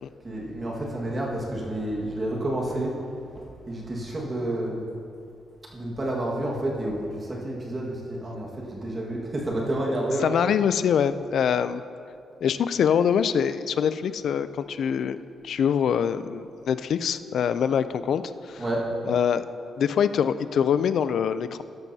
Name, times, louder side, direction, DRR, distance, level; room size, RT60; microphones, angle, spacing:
voice 1, 0.2-3.0 3.3-4.9 5.7-10.4 18.6-18.9, right 1 dB, 25° right, -3 dB, 1.7 m, -30 dB
voice 2, 10.2-11.8 12.4-18.6 19.1-19.4 19.8-21.6, left 8 dB, 60° left, 13 dB, 0.4 m, -24 dB
13.0 x 12.0 x 2.8 m, 2.5 s
cardioid pair, 145°, 0 cm